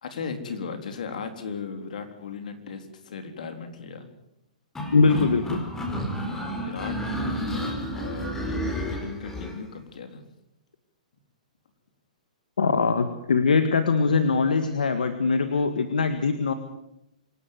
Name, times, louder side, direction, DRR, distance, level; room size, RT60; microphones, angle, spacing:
voice 1, 0.0-4.1 6.5-10.3, left 5 dB, 70° left, 7 dB, 3.8 m, -37 dB
sound 1, 4.7-9.6, equal, 10° left, 4.6 m, -31 dB
voice 2, 4.9-5.6 12.6-16.5, left 4 dB, 90° left, 9 dB, 1.8 m, -22 dB
26.0 x 12.0 x 9.4 m, 0.85 s
hypercardioid pair, 130°, 4 cm